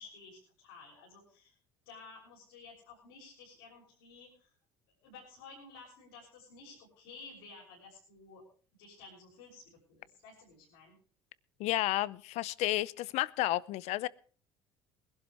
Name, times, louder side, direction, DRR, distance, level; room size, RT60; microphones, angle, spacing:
voice 1, 0.0-1.5 1.8-4.5 5.0-8.4 8.8-10.9, left 4 dB, 85° left, 6.4 m, -53 dB
voice 2, 11.6-14.1, left 17 dB, 65° left, 0.6 m, -31 dB
21.0 x 12.0 x 3.4 m
hypercardioid pair, 75°, 12 cm